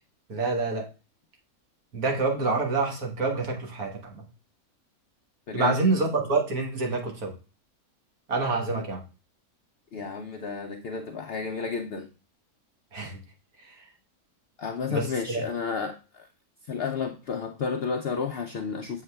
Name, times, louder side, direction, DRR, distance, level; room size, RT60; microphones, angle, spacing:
voice 1, 0.3-0.9 1.9-4.3 5.5-7.3 8.3-9.0 12.9-13.2 13.6-13.8 14.9-15.4, right 3 dB, 80° right, 1 dB, 1.8 m, -27 dB
voice 2, 5.5-5.8 8.7-8.8 9.9-12.1 14.6-16.3 16.6-19.0, left 5 dB, 75° left, 4 dB, 0.5 m, -32 dB
7.2 x 6.4 x 2.2 m, 0.34 s
omnidirectional pair, 1.6 m